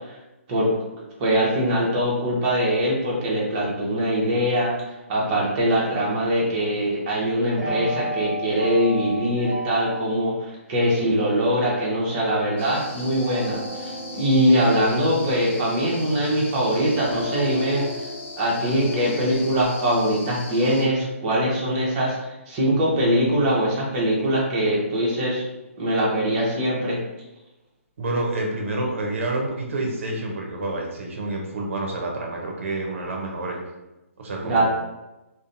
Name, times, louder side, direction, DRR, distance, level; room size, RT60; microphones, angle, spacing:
voice 1, 1.2-17.9 18.4-22.2 22.5-25.4 25.8-27.0 34.4-34.7, equal, 30° right, -4 dB, 0.9 m, -22 dB
sound 1, 7.6-10.3 13.0-16.4 16.9-19.6, equal, 5° right, 0.4 m, -34 dB
sound 2, 12.6-20.8, left 2 dB, 55° left, 0.8 m, -40 dB
voice 2, 28.0-33.6 34.2-34.7, right 2 dB, 60° right, 0 dB, 0.7 m, -28 dB
2.6 x 2.2 x 2.6 m, 1.0 s
hypercardioid pair, 145°, 8 cm